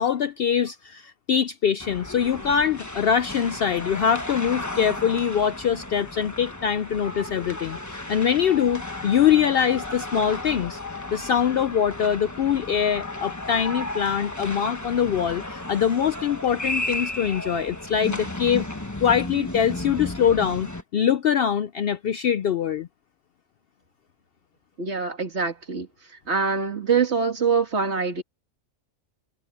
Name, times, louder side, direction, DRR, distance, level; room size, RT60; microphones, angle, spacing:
voice 1, 0.0-10.8 11.1-18.7 19.0-22.9, left 8 dB, 65° left, 0.6 m, -23 dB
sound 1, 1.8-20.8, left 2 dB, 15° left, 1.3 m, -34 dB
voice 2, 24.8-25.9 26.3-28.2, right 5 dB, 55° right, 2.3 m, -24 dB
omnidirectional pair, 1.4 m